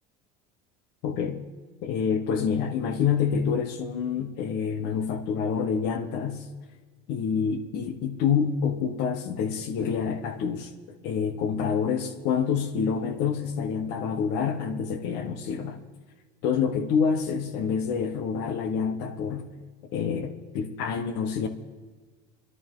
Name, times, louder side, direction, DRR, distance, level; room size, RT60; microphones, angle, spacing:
voice 1, 1.0-1.4 1.8-6.5 7.1-15.8 16.4-19.5 19.9-21.5, left 6 dB, 55° left, 1.2 m, -27 dB
25.5 x 11.0 x 3.8 m
cardioid pair, 160°, 21 cm